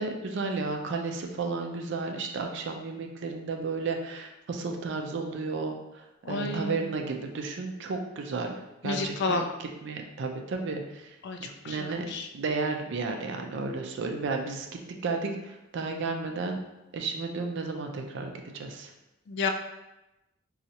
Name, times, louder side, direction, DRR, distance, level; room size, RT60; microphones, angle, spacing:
voice 1, 0.0-8.5 8.8-9.5 9.8-12.1 12.3-14.7 15.0-16.6 16.9-18.9, right 4 dB, 65° right, 3 dB, 0.4 m, -33 dB
voice 2, 6.2-6.9 8.8-9.5 11.2-12.3 19.3-19.5, left 3 dB, 60° left, 5 dB, 0.3 m, -31 dB
4.0 x 2.3 x 2.8 m, 0.97 s
head